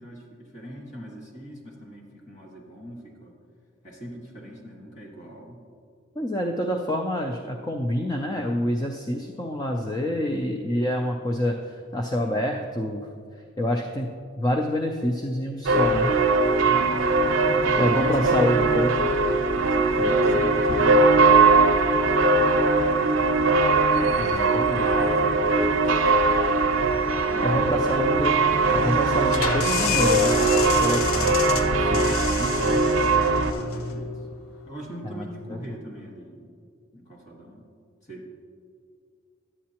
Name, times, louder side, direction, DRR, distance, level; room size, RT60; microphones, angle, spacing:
voice 1, 0.0-3.3 3.8-5.6 16.5-17.0 17.4-19.1 19.5-23.1 24.2-26.7 27.3-27.8 33.1-34.2 34.7-36.5 36.9-37.6 38.1-38.4, equal, 35° left, -1 dB, 1.6 m, -40 dB
voice 2, 6.2-13.1 13.6-16.1 17.8-18.9 20.0-20.4 24.2-24.9 27.4-28.5 28.7-32.9 35.0-35.6, left 1 dB, 20° left, 2 dB, 0.4 m, -27 dB
sound 1, 15.6-33.5, right 3 dB, 65° right, 0.6 m, -20 dB
sound 2, 29.3-34.7, left 7 dB, 90° left, 0.5 m, -30 dB
11.0 x 8.4 x 2.9 m, 2.3 s
head